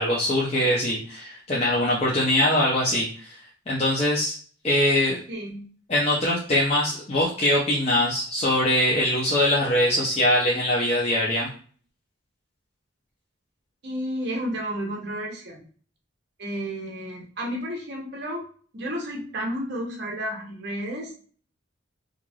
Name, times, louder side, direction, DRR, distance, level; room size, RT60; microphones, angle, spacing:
voice 1, 0.0-3.4 3.7-4.4 4.6-5.2 5.9-11.5, left 1 dB, 30° left, -6 dB, 0.5 m, -22 dB
voice 2, 5.3-5.7 13.8-15.6 16.4-18.4 18.7-21.1, equal, 55° right, -1 dB, 0.8 m, -31 dB
3.1 x 2.5 x 2.3 m, 0.44 s
head